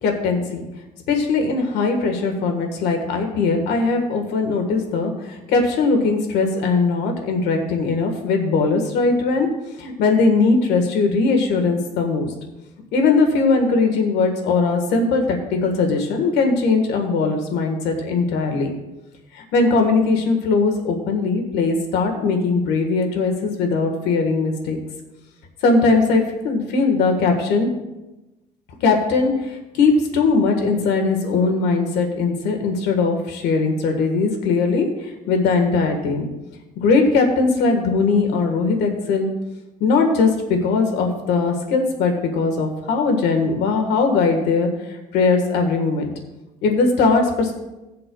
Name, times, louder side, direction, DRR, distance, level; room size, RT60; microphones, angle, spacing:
voice 1, 0.0-0.7 1.1-9.5 9.8-12.3 12.9-18.7 19.3-24.8 25.6-27.7 28.8-36.3 36.8-39.3 39.8-46.1 46.6-47.5, left 4 dB, 85° left, 4 dB, 1.5 m, -20 dB
18.0 x 7.6 x 2.3 m, 1.0 s
cardioid pair, 110°, 17 cm